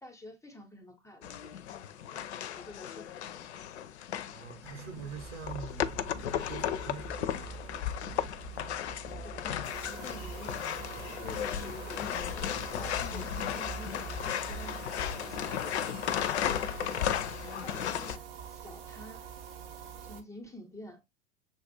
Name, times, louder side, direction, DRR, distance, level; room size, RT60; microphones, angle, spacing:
voice 1, 0.0-2.2 2.5-3.5 9.2-10.8 11.2-12.1 12.8-14.8 15.1-16.2 16.4-17.2 17.6-18.2 18.5-19.2 20.0-21.0, left 1 dB, 10° left, 0.7 m, -50 dB
sound 1, 1.2-18.2, left 10 dB, 60° left, 0.5 m, -35 dB
voice 2, 4.3-6.0 6.3-7.7, right 5 dB, 65° right, 1.3 m, -44 dB
Engine, 4.6-16.3, right 5 dB, 20° right, 0.9 m, -46 dB
sound 2, 9.6-20.2, right 8 dB, 45° right, 0.9 m, -45 dB
6.9 x 2.4 x 2.6 m
figure-of-eight pair, 85°, 38 cm